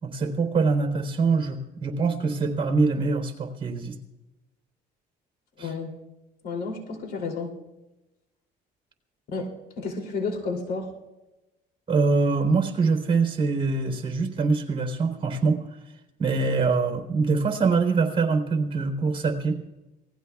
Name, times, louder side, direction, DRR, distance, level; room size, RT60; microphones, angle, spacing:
voice 1, 0.0-4.0 5.6-5.7 11.9-15.7 16.2-19.6, right 4 dB, 30° right, 3 dB, 3.5 m, -24 dB
voice 2, 5.6-6.0 6.4-7.6 9.3-10.9, left 4 dB, 65° left, 2 dB, 3.0 m, -31 dB
27.0 x 19.5 x 2.4 m, 1.0 s
cardioid pair, 110°, 17 cm